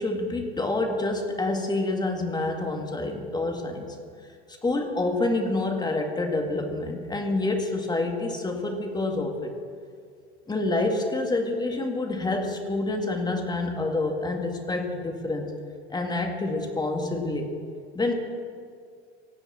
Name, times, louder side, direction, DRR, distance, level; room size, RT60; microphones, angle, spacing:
voice 1, 0.0-4.0 4.6-9.5 10.5-15.5 15.9-17.5 17.9-18.1, left 2 dB, 10° left, 3 dB, 2.0 m, -27 dB
17.0 x 6.9 x 8.5 m, 2.2 s
hypercardioid pair, 85°, 34 cm